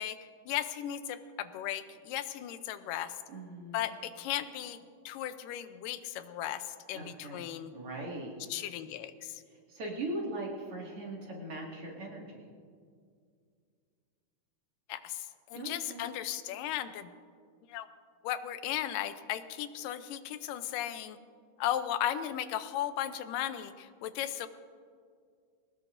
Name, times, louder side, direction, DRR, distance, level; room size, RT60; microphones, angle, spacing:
voice 1, 0.0-3.1 3.7-4.8 5.1-7.7 8.5-9.4 14.9-17.1 17.7-17.9 18.2-21.2 21.6-24.5, left 11 dB, 90° left, 11 dB, 2.3 m, -36 dB
voice 2, 3.3-3.8 6.9-7.5 7.7-8.6 9.5-12.5 15.5-16.2, right 2 dB, 45° right, -3 dB, 2.8 m, -40 dB
22.0 x 19.0 x 2.6 m, 2.2 s
omnidirectional pair, 3.7 m